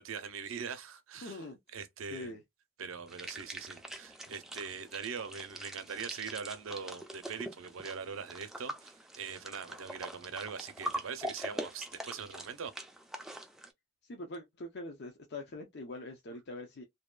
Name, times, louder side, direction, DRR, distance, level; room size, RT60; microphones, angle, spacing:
voice 1, 0.0-1.4 1.7-2.3 2.8-12.7, right 6 dB, 80° right, 0.5 m, -42 dB
voice 2, 1.2-1.6 2.1-2.4 14.0-16.8, left 2 dB, 55° left, 0.5 m, -43 dB
sound 1, 3.1-13.7, right 1 dB, ahead, 0.3 m, -43 dB
2.7 x 2.1 x 2.3 m
head